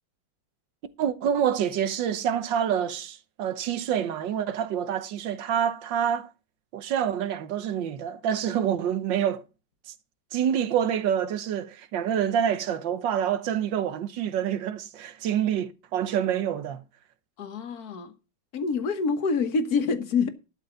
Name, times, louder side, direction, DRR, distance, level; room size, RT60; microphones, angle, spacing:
voice 1, 1.0-6.3 6.7-9.4 9.9-10.0 10.3-16.8, right 9 dB, 85° right, 1.6 m, -27 dB
voice 2, 17.4-18.1 18.5-20.3, left 4 dB, 60° left, 1.6 m, -26 dB
12.5 x 4.9 x 7.8 m
omnidirectional pair, 2.0 m